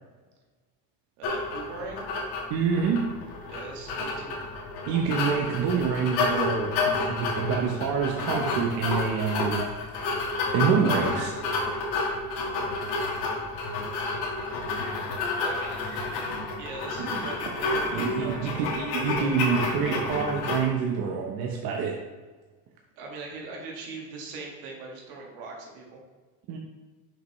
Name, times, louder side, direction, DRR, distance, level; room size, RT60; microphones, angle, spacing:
sound 1, 1.2-20.6, left 3 dB, 65° left, 1.8 m, -30 dB
voice 1, 1.2-2.1 3.5-4.4 15.4-15.9 16.6-18.7 23.0-26.0, right 3 dB, 80° right, -1 dB, 1.8 m, -40 dB
voice 2, 2.5-3.1 4.9-9.6 9.9-11.3 17.0-17.3 17.9-21.9 26.5-26.6, right 6 dB, 55° right, 0 dB, 0.9 m, -27 dB
6.0 x 5.4 x 3.1 m, 1.3 s
supercardioid pair, 115°, 42 cm